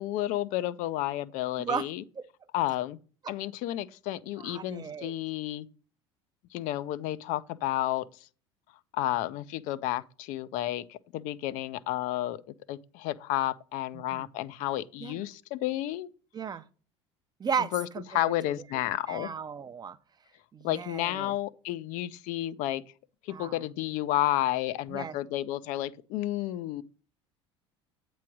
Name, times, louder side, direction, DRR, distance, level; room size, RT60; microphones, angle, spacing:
voice 1, 0.0-2.0 2.5-3.0 3.3-5.7 6.5-8.1 8.9-12.4 12.7-16.1 17.6-19.3 20.6-22.8 23.2-26.8, left 14 dB, 60° left, 0.5 m, -31 dB
voice 2, 4.4-5.1 13.9-14.3 15.0-15.2 16.3-16.7 17.4-18.3 19.1-20.0 20.5-21.4 23.3-23.6 24.9-25.2, right 6 dB, 30° right, 0.6 m, -35 dB
8.3 x 3.1 x 6.0 m
hypercardioid pair, 75°, 15 cm